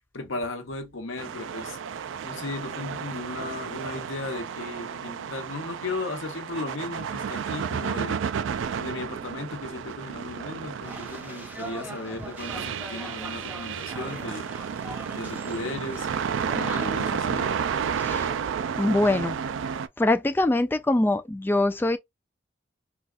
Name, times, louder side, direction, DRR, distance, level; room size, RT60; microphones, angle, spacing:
voice 1, 0.1-1.8 2.2-8.2 8.8-14.5 15.1-16.1 16.4-17.5, left 2 dB, 75° left, 1.0 m, -36 dB
sound 1, 1.2-19.9, right 7 dB, 70° right, 0.3 m, -32 dB
sound 2, 10.8-17.5, right 1 dB, 10° right, 0.8 m, -42 dB
voice 2, 18.0-18.3 18.8-19.4 20.0-22.0, left 2 dB, 10° left, 0.3 m, -23 dB
4.0 x 2.3 x 2.4 m
head